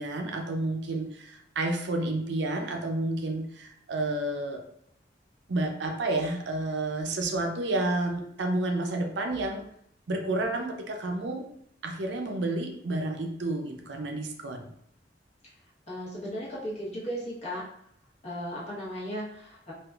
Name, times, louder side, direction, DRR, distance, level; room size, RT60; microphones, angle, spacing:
voice 1, 0.0-4.6 5.5-9.7 10.1-11.4 11.8-14.6, right 2 dB, 75° right, 4 dB, 0.5 m, -30 dB
voice 2, 15.9-17.6 18.2-19.7, equal, 40° left, -6 dB, 1.1 m, -36 dB
3.7 x 2.5 x 2.3 m, 0.68 s
head